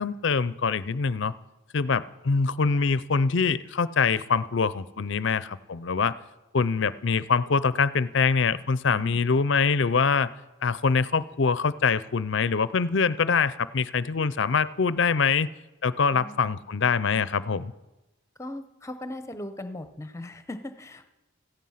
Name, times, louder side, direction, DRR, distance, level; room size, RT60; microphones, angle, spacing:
voice 1, 0.0-1.3 1.7-6.1 6.5-10.3 10.6-15.5 15.8-17.7, left 5 dB, 60° left, 16 dB, 0.5 m, -24 dB
voice 2, 8.9-9.2 16.1-16.6 18.4-21.0, left 1 dB, 15° left, 9 dB, 0.9 m, -39 dB
17.0 x 14.5 x 5.7 m, 1.0 s
head